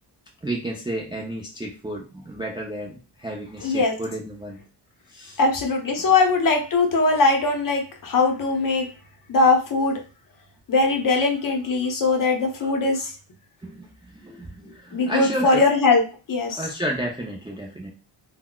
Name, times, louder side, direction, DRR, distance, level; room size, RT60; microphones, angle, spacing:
voice 1, 0.4-4.6 5.1-5.4 6.0-6.1 12.6-12.7 13.6-15.6 16.5-17.9, right 1 dB, 10° right, -2 dB, 0.3 m, -32 dB
voice 2, 3.6-3.9 5.4-8.9 9.3-10.0 10.7-13.1 14.9-16.0 16.3-16.6, left 3 dB, 45° left, 3 dB, 0.7 m, -20 dB
3.8 x 2.2 x 2.2 m, 0.34 s
wide cardioid pair, 140°, 48 cm